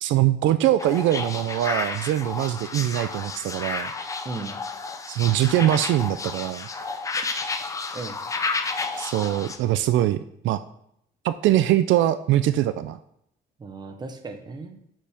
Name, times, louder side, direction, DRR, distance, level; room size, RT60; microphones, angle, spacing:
voice 1, 0.0-3.9 5.1-6.7 9.0-10.6 11.2-13.0, right 13 dB, 80° right, 13 dB, 0.5 m, -22 dB
sound 1, 0.8-9.6, left 4 dB, 15° left, 0.5 m, -31 dB
voice 2, 7.7-8.2 13.6-14.8, right 3 dB, 20° right, 6 dB, 0.8 m, -36 dB
9.1 x 7.5 x 3.5 m, 0.72 s
cardioid pair, 170°, 19 cm